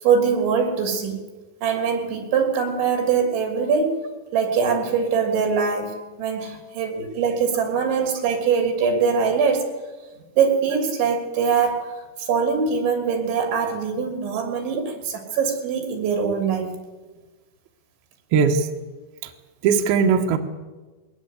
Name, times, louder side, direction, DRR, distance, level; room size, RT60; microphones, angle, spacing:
voice 1, 0.0-1.2 1.6-4.0 4.3-9.7 10.4-16.7, right 6 dB, 85° right, 5 dB, 5.5 m, -22 dB
voice 2, 18.3-18.7 19.6-20.4, right 6 dB, 70° right, 4 dB, 3.0 m, -18 dB
21.5 x 19.0 x 8.3 m, 1.3 s
omnidirectional pair, 5.1 m